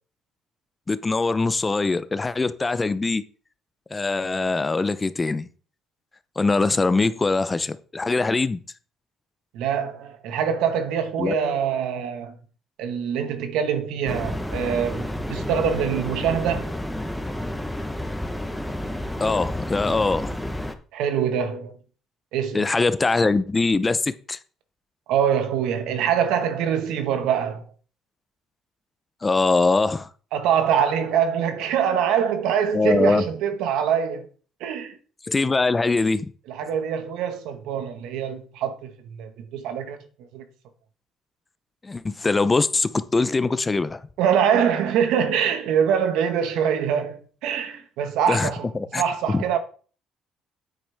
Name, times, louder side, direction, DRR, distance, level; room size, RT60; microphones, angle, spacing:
voice 1, 0.9-3.2 3.9-5.5 6.4-8.6 11.2-11.3 19.2-20.4 22.5-24.4 29.2-30.1 32.7-33.2 35.3-36.3 41.8-44.0 48.3-48.5 48.7-49.0 49.3-49.4, left 3 dB, 20° left, 0.6 m, -22 dB
voice 2, 9.5-12.3 12.8-16.7 20.9-21.8 22.3-22.7 25.1-27.6 30.3-34.3 34.6-35.0 36.5-40.0 40.3-40.4 44.2-48.7 49.0-49.6, right 8 dB, 85° right, 1.5 m, -24 dB
sound 1, 14.1-20.7, left 1 dB, 5° left, 1.0 m, -30 dB
9.1 x 8.3 x 3.5 m
cardioid pair, 120°, 0 cm